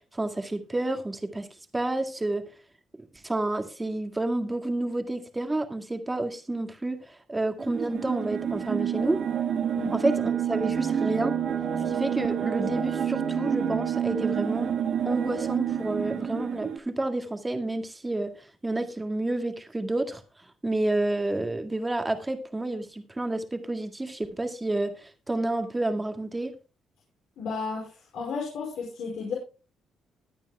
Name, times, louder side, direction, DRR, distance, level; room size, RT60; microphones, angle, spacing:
voice 1, 0.1-1.5 1.7-2.4 3.2-9.2 9.9-11.4 11.9-14.8 15.0-18.3 18.6-20.2 20.6-26.6, right 2 dB, 15° right, 1.9 m, -29 dB
sound 1, 7.6-16.8, right 8 dB, 65° right, 1.5 m, -28 dB
voice 2, 27.4-29.3, left 5 dB, 80° left, 4.8 m, -33 dB
20.5 x 9.1 x 2.2 m
cardioid pair, 90°, 0 cm